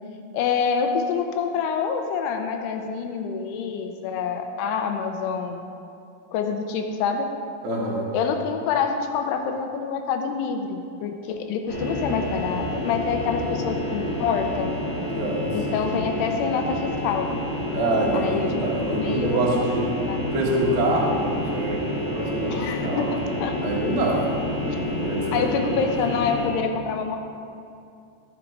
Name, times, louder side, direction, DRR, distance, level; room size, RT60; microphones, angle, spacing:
voice 1, 0.3-5.6 6.3-7.3 8.1-14.7 15.5-17.3 18.1-18.6 19.0-20.2 22.5-23.6 24.6-24.8 25.3-27.2, left 6 dB, 80° left, 5 dB, 2.5 m, -27 dB
voice 2, 7.6-8.0 15.1-15.8 17.7-19.8 20.3-22.5 22.8-23.1 23.6-25.5, right 2 dB, 75° right, -3 dB, 1.1 m, -25 dB
sound 1, 11.7-26.5, left 1 dB, 55° left, 3.1 m, -29 dB
13.5 x 6.2 x 4.6 m, 2.5 s
omnidirectional pair, 5.0 m